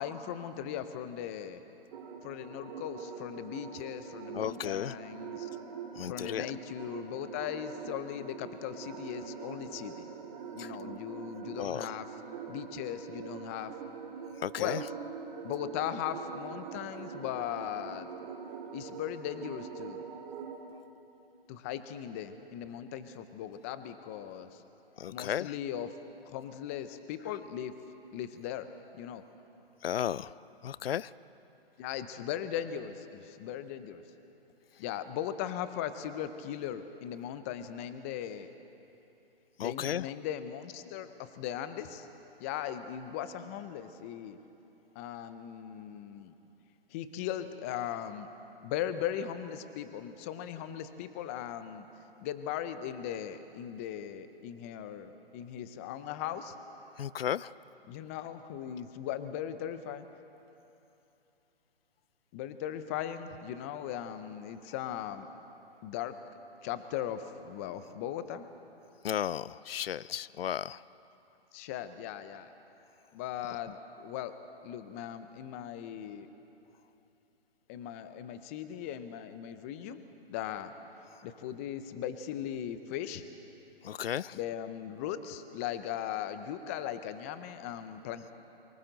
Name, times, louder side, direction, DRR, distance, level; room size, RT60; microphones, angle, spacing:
voice 1, 0.0-1.6 2.2-5.5 6.0-10.0 10.5-12.1 12.5-13.7 14.6-14.8 15.4-18.1 18.7-20.0 21.5-24.6 25.1-25.9 26.3-27.7 28.1-28.7 28.9-29.2 31.8-34.0 34.8-38.5 39.6-42.1 42.4-44.4 45.0-46.3 46.9-48.3 48.6-51.9 52.2-56.6 57.9-60.1 62.3-65.3 65.8-66.1 66.6-68.4 71.5-72.5 73.1-74.4 74.6-76.3 77.7-80.0 80.3-80.7 81.2-83.2 84.3-88.3, left 10 dB, 15° left, 11 dB, 0.5 m, -38 dB
sound 1, 1.9-20.6, right 6 dB, 35° right, 2.4 m, -44 dB
voice 2, 4.3-4.9 6.0-6.5 10.6-10.7 11.6-11.8 14.4-14.8 25.0-25.5 29.8-30.3 30.6-31.1 39.6-40.1 57.0-57.5 69.0-70.8 83.8-84.4, left 10 dB, 70° left, 20 dB, 0.5 m, -34 dB
29.0 x 24.0 x 3.9 m, 2.9 s
hypercardioid pair, 145°, 30 cm